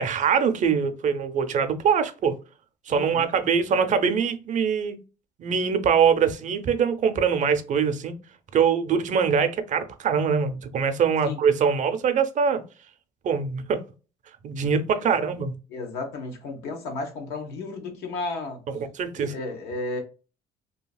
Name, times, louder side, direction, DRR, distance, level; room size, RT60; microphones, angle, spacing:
voice 1, 0.0-2.4 2.9-5.0 5.4-8.1 8.5-12.6 13.2-13.8 14.4-15.5 18.8-19.4, right 6 dB, 45° right, 0.5 m, -23 dB
voice 2, 2.9-3.3 11.2-11.4 14.9-15.3 15.7-18.6 19.1-20.0, left 3 dB, 85° left, 1.0 m, -33 dB
2.8 x 2.7 x 2.3 m
cardioid pair, 110°, 17 cm